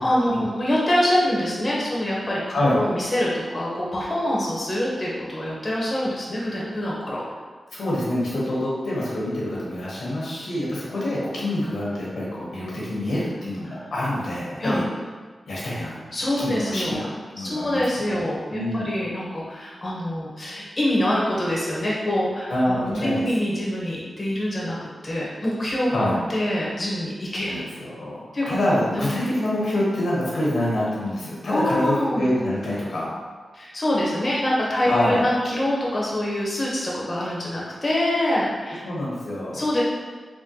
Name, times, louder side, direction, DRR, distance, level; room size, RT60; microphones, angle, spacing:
voice 1, 0.0-7.2 13.7-13.8 14.6-14.8 16.1-17.1 17.4-24.8 25.0-27.6 28.3-28.6 28.9-29.1 31.5-32.3 33.5-38.8 39.5-39.8, left 1 dB, 35° left, -5 dB, 0.7 m, -25 dB
voice 2, 7.7-14.8 15.5-16.0 16.4-18.2 18.5-18.9 22.5-23.2 25.9-26.2 27.4-33.1 34.9-35.2 38.8-39.6, left 1 dB, 85° left, -6 dB, 1.0 m, -26 dB
3.6 x 2.1 x 2.7 m, 1.5 s
cardioid pair, 70°, 0 cm